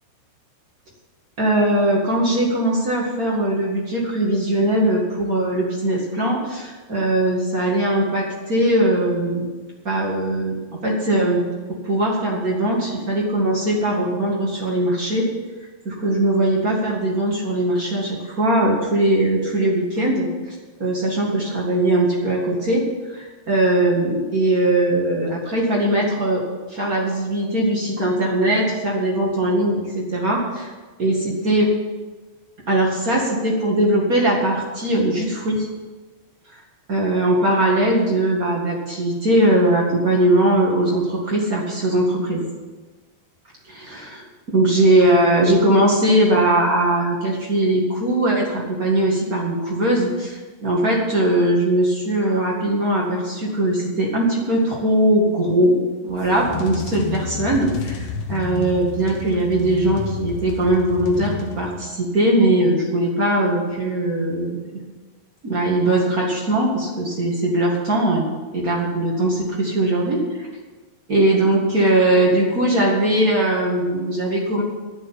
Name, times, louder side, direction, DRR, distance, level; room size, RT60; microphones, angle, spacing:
voice 1, 1.4-9.4 9.8-10.5 10.8-11.4 11.8-15.3 15.8-26.4 26.7-30.7 31.0-31.7 32.7-35.7 36.9-42.4 43.7-44.2 44.5-55.8 56.0-64.8 65.4-68.3 68.5-70.5 71.1-74.6, right 1 dB, 60° right, -3 dB, 0.9 m, -20 dB
sound 1, 56.1-62.1, left 6 dB, 85° left, 1.6 m, -31 dB
10.0 x 7.9 x 9.0 m, 1.3 s
omnidirectional pair, 5.1 m